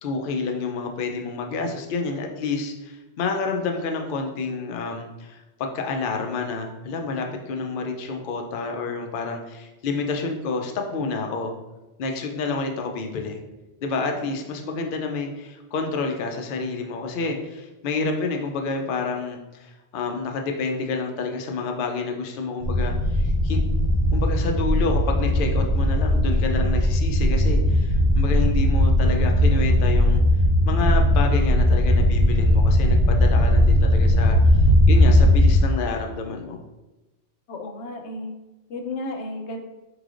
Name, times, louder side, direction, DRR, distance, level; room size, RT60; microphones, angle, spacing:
voice 1, 0.0-11.5 12.0-13.4 13.8-23.6 24.1-30.2 30.6-34.4 34.9-36.6, left 3 dB, 60° left, 3 dB, 0.7 m, -29 dB
sound 1, 22.6-35.6, left 1 dB, 80° right, 0.9 m, -18 dB
voice 2, 37.5-38.3 38.7-39.6, left 2 dB, 85° left, 4 dB, 0.9 m, -33 dB
4.7 x 3.2 x 2.4 m, 1.0 s
omnidirectional pair, 1.1 m